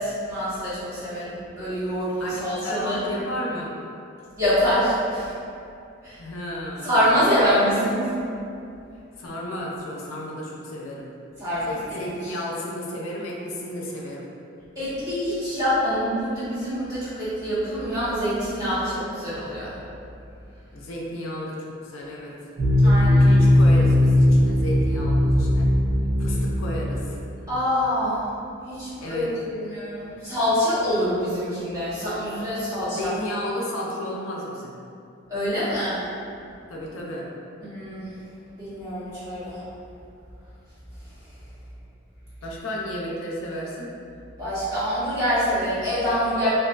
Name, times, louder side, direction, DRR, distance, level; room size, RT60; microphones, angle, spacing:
voice 1, 0.0-3.0 4.4-5.3 6.0-6.2 6.8-8.1 11.4-12.0 14.8-19.7 22.8-23.3 27.5-28.2 28.7-33.1 35.3-36.0 37.6-38.1 38.6-39.6 44.4-46.5, equal, 15° right, -14 dB, 0.9 m, -25 dB
voice 2, 2.2-3.7 6.2-6.9 9.2-11.1 11.6-14.3 20.7-22.3 22.8-25.7 26.2-27.2 29.0-29.3 32.9-34.7 36.7-37.3 42.4-43.9, left 1 dB, 85° left, -3 dB, 0.4 m, -33 dB
sound 1, 22.6-27.6, left 1 dB, 45° right, 0.6 m, -19 dB
2.5 x 2.3 x 2.2 m, 2.5 s
head